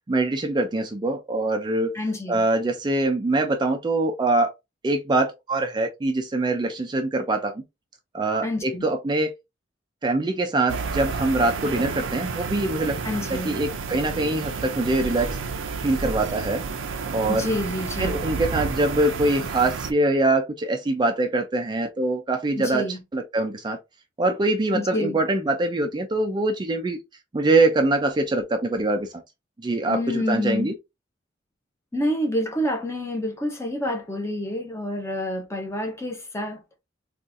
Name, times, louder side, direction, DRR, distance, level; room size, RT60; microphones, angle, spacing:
voice 1, 0.1-1.9 2.3-4.5 4.8-7.6 8.1-9.3 10.0-13.0 13.3-15.4 15.8-16.6 17.1-17.6 18.0-23.8 24.2-27.0 27.3-29.2 29.6-30.7, right 2 dB, 25° right, 0.4 m, -23 dB
voice 2, 1.9-2.4 8.4-8.9 13.0-13.6 17.3-18.2 22.6-23.0 24.7-25.2 29.9-30.7 31.9-36.6, left 1 dB, 15° left, 0.7 m, -28 dB
sound 1, 10.7-19.9, right 4 dB, 85° right, 0.5 m, -31 dB
3.8 x 2.4 x 2.5 m
head